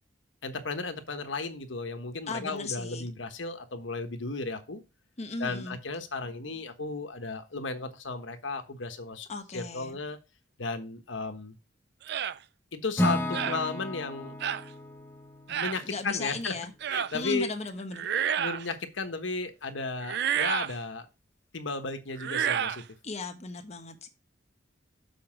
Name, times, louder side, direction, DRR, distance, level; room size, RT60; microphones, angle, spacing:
voice 1, 0.4-4.8 5.4-10.2 10.6-11.5 12.7-14.4 15.5-16.5 16.9-17.5 18.4-21.1 21.5-22.8, left 3 dB, 90° left, 7 dB, 1.3 m, -34 dB
voice 2, 2.3-3.1 5.2-5.8 9.3-10.0 15.8-16.7 17.1-18.1 23.0-24.1, left 3 dB, 35° left, 6 dB, 1.3 m, -36 dB
sound 1, 12.1-12.4 13.3-13.6 14.4-14.6 15.5-15.8 16.8-17.1 17.9-18.7 20.0-20.7 22.2-22.8, right 9 dB, 60° right, 0.5 m, -29 dB
Acoustic guitar / Strum, 13.0-17.0, left 1 dB, 10° left, 1.0 m, -34 dB
7.2 x 4.9 x 6.0 m, 0.27 s
head